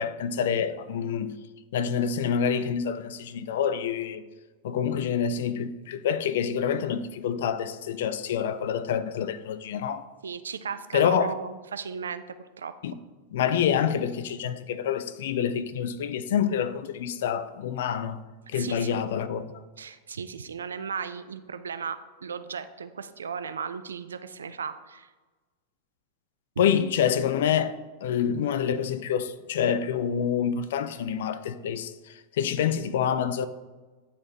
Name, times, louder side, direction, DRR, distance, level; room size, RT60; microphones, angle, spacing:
voice 1, 0.0-1.3 1.7-4.2 4.6-10.1 10.9-11.3 12.8-12.9 13.3-18.2 18.5-19.4 26.6-33.5, left 8 dB, 55° left, 0.4 m, -27 dB
voice 2, 10.2-12.7 18.6-19.0 19.8-25.1 26.6-26.7, right 6 dB, 70° right, 0.3 m, -36 dB
9.5 x 4.2 x 2.9 m
figure-of-eight pair, 90°, 0 cm